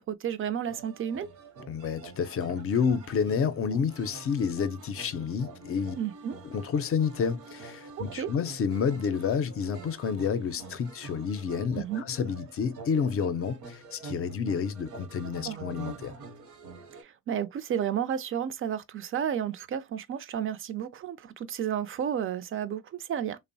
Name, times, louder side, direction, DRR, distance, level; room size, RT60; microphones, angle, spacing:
voice 1, 0.1-1.3 6.0-6.4 8.0-8.3 11.7-12.0 15.5-15.6 16.9-23.4, right 9 dB, 45° right, 0.4 m, -32 dB
sound 1, 0.6-17.0, right 4 dB, 70° right, 0.8 m, -47 dB
voice 2, 1.7-6.0 6.4-16.1, left 6 dB, 45° left, 0.5 m, -29 dB
2.9 x 2.0 x 2.6 m
cardioid pair, 90°, 30 cm